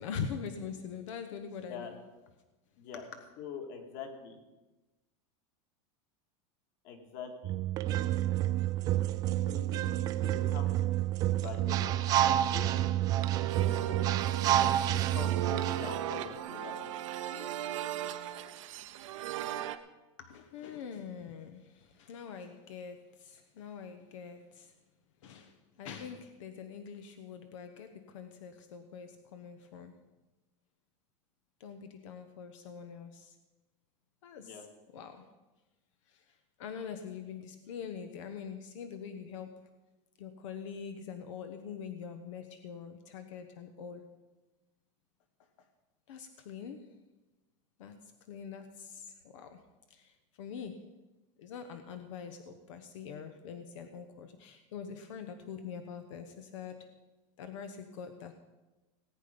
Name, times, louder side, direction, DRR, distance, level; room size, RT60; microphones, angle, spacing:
voice 1, 0.0-2.0 20.2-24.7 25.2-29.9 31.6-33.4 34.2-34.6 34.9-35.2 36.1-39.6 40.2-44.0 46.1-46.9 47.8-48.0 48.3-49.6 49.9-50.8 51.4-56.9 57.4-58.3, left 6 dB, 85° left, 8 dB, 1.1 m, -44 dB
voice 2, 2.8-3.1 3.4-4.4 6.8-7.6 9.5-10.9 11.3-12.8 13.1-14.0 14.8-16.9 34.4-34.6, left 5 dB, 45° left, 4 dB, 2.1 m, -45 dB
sound 1, 7.4-16.2, right 13 dB, 25° right, 0.4 m, -29 dB
sound 2, 13.2-19.8, right 11 dB, 80° right, 0.9 m, -37 dB
18.5 x 8.6 x 5.2 m, 1.1 s
supercardioid pair, 175°, 16 cm